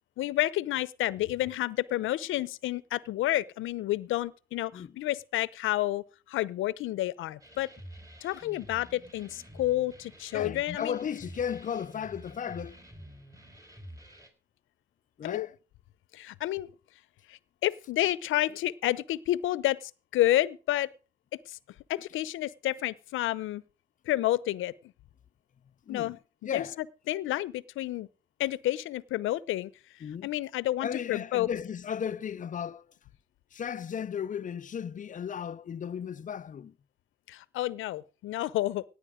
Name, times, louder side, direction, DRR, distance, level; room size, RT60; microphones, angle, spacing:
voice 1, 0.2-7.7 8.2-11.0 15.2-15.5 16.1-16.7 17.3-20.9 21.5-21.6 21.9-23.6 24.1-24.7 25.9-26.2 26.4-26.6 27.1-28.1 28.4-29.7 30.2-31.5 37.3-38.8, left 15 dB, 85° left, 0.8 m, -30 dB
sound 1, 7.4-14.3, equal, 15° right, 4.4 m, -49 dB
voice 2, 10.3-12.8 15.2-15.5 25.9-26.2 26.4-26.8 30.0-30.3 30.8-32.9 33.5-36.7, left 8 dB, 40° left, 0.6 m, -35 dB
17.5 x 9.5 x 5.0 m
cardioid pair, 90°, 20 cm